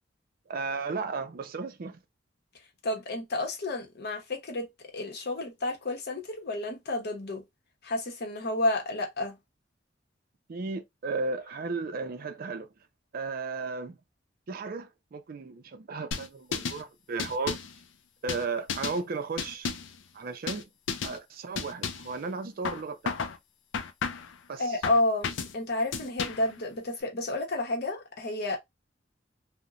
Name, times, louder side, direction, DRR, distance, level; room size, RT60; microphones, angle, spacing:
voice 1, 0.5-2.0 10.5-12.7 13.1-14.0 14.5-17.6 18.2-19.7 20.1-20.6 21.0-23.2 24.5-24.8, right 4 dB, 50° right, 0.4 m, -34 dB
voice 2, 2.8-7.4 7.8-9.4 24.6-28.6, left 2 dB, 60° left, 0.8 m, -30 dB
sound 1, 16.1-16.8 17.2-17.7 18.3-19.0 19.4-20.0 20.5-20.6 20.9-21.2 21.6-22.1 22.6-23.4 23.7-24.3 24.8-25.5 25.9-26.5, left 5 dB, 80° left, 0.4 m, -33 dB
2.9 x 2.1 x 2.4 m
head